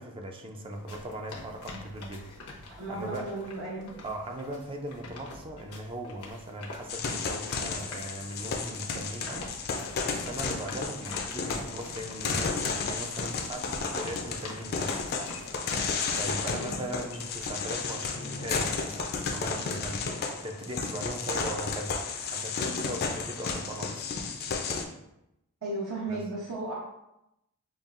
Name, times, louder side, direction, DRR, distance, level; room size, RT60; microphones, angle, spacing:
voice 1, 0.0-3.2 4.0-15.0 16.1-22.0 22.3-24.1 26.1-26.2, right 1 dB, 25° right, 3 dB, 0.4 m, -39 dB
Pessoas trotando, 0.7-17.5, left 2 dB, 90° left, 0.8 m, -46 dB
voice 2, 2.8-4.0 16.5-16.8 25.6-26.8, right 2 dB, 65° right, -6 dB, 0.7 m, -35 dB
sound 1, 6.9-24.8, left 4 dB, 45° left, 0.4 m, -33 dB
5.4 x 2.3 x 2.4 m, 0.85 s
head